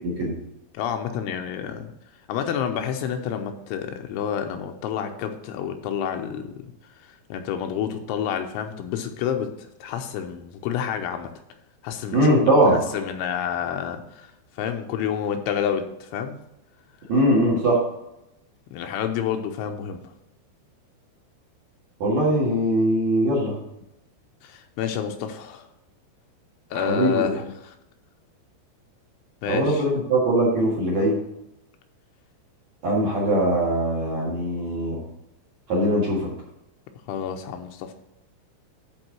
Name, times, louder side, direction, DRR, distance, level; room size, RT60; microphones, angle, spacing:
voice 1, 0.0-0.3 12.1-12.8 17.1-17.8 22.0-23.5 26.7-27.3 29.5-31.2 32.8-35.0 35.7-36.3, right 1 dB, 55° right, -3 dB, 2.2 m, -21 dB
voice 2, 0.7-1.9 2.3-6.7 7.3-9.5 9.8-11.3 11.8-12.3 12.7-16.4 18.7-20.0 24.4-25.7 26.7-27.7 29.4-29.9 37.1-37.9, left 8 dB, 85° left, 5 dB, 3.1 m, -29 dB
11.0 x 4.7 x 6.0 m, 0.87 s
omnidirectional pair, 5.7 m